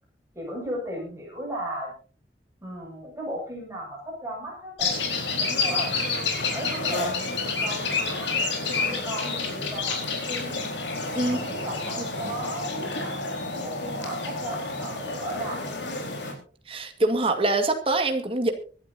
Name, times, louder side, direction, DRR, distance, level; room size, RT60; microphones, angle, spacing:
voice 1, 0.3-1.9 2.6-5.9 6.5-10.6 11.2-16.0, right 1 dB, 15° right, -2 dB, 7.1 m, -36 dB
sound 1, 4.8-16.3, left 3 dB, 85° left, 4.3 m, -29 dB
voice 2, 16.7-18.5, right 2 dB, 30° right, 6 dB, 2.0 m, -24 dB
24.0 x 12.0 x 2.8 m, 0.38 s
head